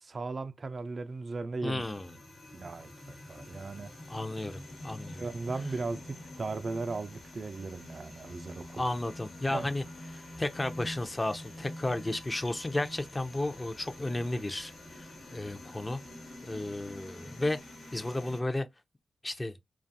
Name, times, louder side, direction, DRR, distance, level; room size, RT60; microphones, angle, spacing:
voice 1, 0.0-1.8 2.5-3.9 5.2-9.0 9.5-9.7, right 3 dB, 55° right, 0.3 m, -37 dB
voice 2, 1.6-2.2 4.1-5.3 8.8-16.0 16.4-17.6 17.9-18.7 19.2-19.6, left 2 dB, 25° left, 0.4 m, -33 dB
sound 1, 1.8-18.4, left 1 dB, 60° left, 1.1 m, -47 dB
2.4 x 2.3 x 2.6 m
supercardioid pair, 40°, 0 cm